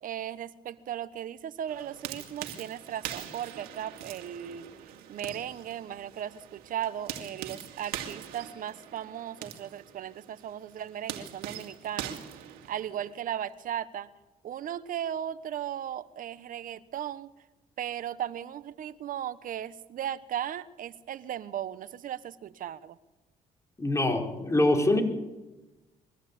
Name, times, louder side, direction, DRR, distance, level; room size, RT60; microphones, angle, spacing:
voice 1, 0.0-4.7 5.1-12.2 12.7-14.1 14.4-17.3 17.8-23.0, right 10 dB, 65° right, 15 dB, 1.1 m, -36 dB
sound 1, 1.7-13.1, right 10 dB, 85° right, 2.4 m, -42 dB
voice 2, 23.8-25.0, left 1 dB, 20° left, 2 dB, 4.8 m, -24 dB
23.0 x 15.0 x 8.5 m, 1.1 s
supercardioid pair, 70°, 15 cm